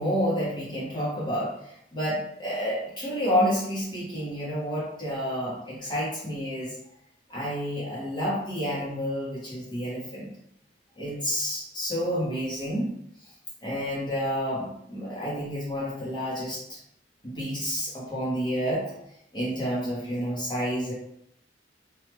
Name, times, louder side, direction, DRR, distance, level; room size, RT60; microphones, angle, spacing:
voice 1, 0.0-6.7 7.3-10.3 11.0-12.9 13.6-16.8 17.2-18.9 19.3-20.9, equal, 25° left, -7 dB, 0.8 m, -29 dB
3.0 x 2.3 x 3.4 m, 0.74 s
head